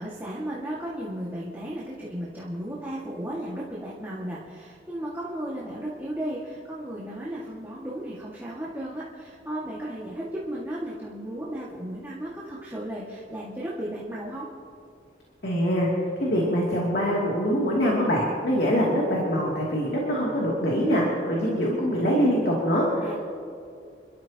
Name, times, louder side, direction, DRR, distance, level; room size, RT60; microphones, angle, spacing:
voice 1, 0.0-14.5 23.0-23.2, right 1 dB, 10° right, -7 dB, 1.9 m, -35 dB
voice 2, 15.4-15.9 16.2-23.2, equal, 60° left, -4 dB, 2.7 m, -24 dB
28.0 x 13.0 x 2.9 m, 2.4 s
head